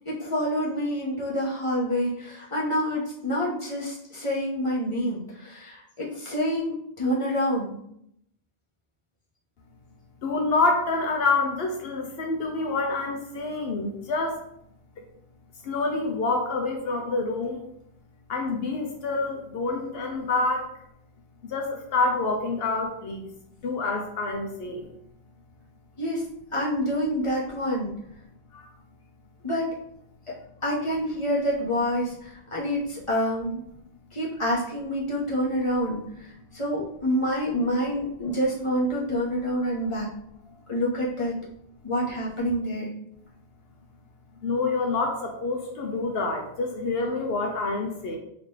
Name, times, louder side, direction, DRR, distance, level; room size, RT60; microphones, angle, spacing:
voice 1, 0.1-7.8 26.0-26.2 26.5-27.9 29.4-29.8 30.3-30.4 30.6-33.6 34.1-40.1 40.7-41.4 41.8-42.9, equal, 35° left, -5 dB, 0.8 m, -27 dB
voice 2, 10.2-14.4 15.6-17.6 18.3-20.7 21.4-23.3 23.6-24.9 28.5-28.7 39.6-39.7 44.4-48.2, left 3 dB, 75° left, 2 dB, 0.8 m, -27 dB
3.6 x 2.8 x 3.2 m, 0.73 s
omnidirectional pair, 1.1 m